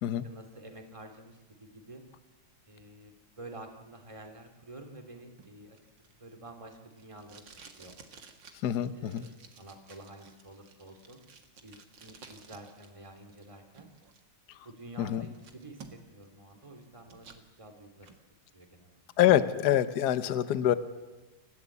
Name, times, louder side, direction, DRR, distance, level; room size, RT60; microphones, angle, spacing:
voice 1, 0.2-2.0 2.7-5.8 6.2-7.9 8.9-9.3 9.6-11.2 11.6-13.9 14.6-18.1 18.5-19.2, right 2 dB, 15° right, 5 dB, 2.5 m, -49 dB
Packing tape duct tape, 5.4-12.9 13.2-14.2 14.7-14.8 15.1-16.3 16.6-17.4 17.8-18.2, right 5 dB, 60° right, 2.5 m, -54 dB
voice 2, 8.6-9.3 15.0-15.3 19.2-20.8, left 11 dB, 55° left, 13 dB, 1.4 m, -25 dB
29.0 x 15.0 x 8.4 m, 1.2 s
omnidirectional pair, 2.3 m